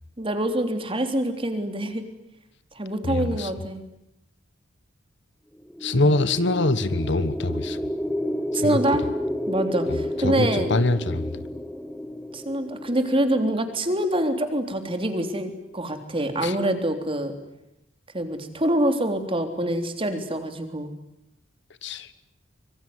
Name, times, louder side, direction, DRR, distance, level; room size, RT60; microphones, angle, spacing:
voice 1, 0.2-2.0 2.8-3.8 5.9-6.0 8.5-9.0 9.5-10.7 12.3-17.3 18.1-20.9, right 1 dB, 30° right, 7 dB, 3.5 m, -25 dB
voice 2, 3.0-3.5 5.8-7.8 8.6-8.8 9.9-11.4 16.4-16.6 21.8-22.1, left 2 dB, 65° left, 14 dB, 1.5 m, -24 dB
sound 1, 5.6-13.8, left 1 dB, 5° left, 1.6 m, -31 dB
25.5 x 23.5 x 9.7 m, 0.84 s
head